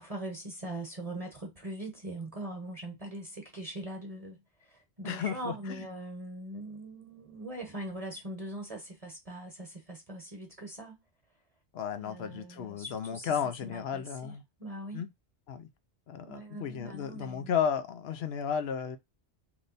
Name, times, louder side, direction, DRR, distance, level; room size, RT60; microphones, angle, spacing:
voice 1, 0.0-4.4 4.7-10.9 12.0-15.0 16.2-17.6, right 1 dB, 35° right, 1.1 m, -41 dB
voice 2, 5.0-5.5 11.7-14.4 14.9-15.1 15.5-15.7 16.1-19.0, left 7 dB, 70° left, 0.9 m, -33 dB
3.3 x 2.9 x 4.0 m
omnidirectional pair, 1.1 m